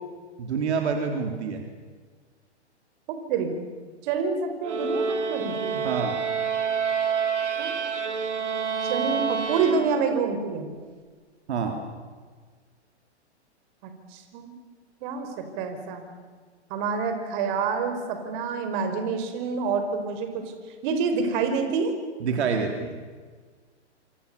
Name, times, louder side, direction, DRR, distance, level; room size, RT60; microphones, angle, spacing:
voice 1, 0.4-1.6 5.8-6.2 11.5-11.8 22.2-23.0, right 5 dB, 70° right, 4 dB, 3.8 m, -27 dB
voice 2, 3.1-3.5 4.0-5.8 7.6-7.7 8.8-10.7 13.8-14.5 15.0-16.1 16.7-20.4 20.8-21.9, right 5 dB, 40° right, 6 dB, 5.1 m, -27 dB
sound 1, 4.6-10.3, right 6 dB, 90° right, 3.8 m, -28 dB
27.0 x 26.0 x 7.0 m, 1.5 s
hypercardioid pair, 130°, 35 cm